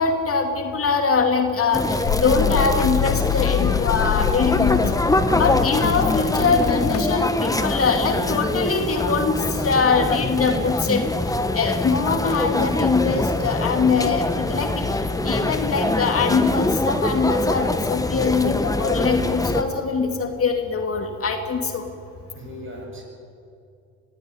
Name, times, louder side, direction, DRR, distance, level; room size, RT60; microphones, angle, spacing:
voice 1, 0.0-4.8 5.3-11.0 11.5-14.9 15.2-21.9, left 4 dB, 50° left, 4 dB, 2.7 m, -22 dB
sound 1, 1.7-19.6, left 2 dB, 10° left, 1.4 m, -24 dB
sound 2, 2.0-7.0, left 13 dB, 70° left, 0.6 m, -25 dB
voice 2, 22.3-23.0, left 1 dB, 40° right, 1 dB, 7.7 m, -39 dB
23.0 x 15.0 x 10.0 m, 2.5 s
cardioid pair, 90°, 30 cm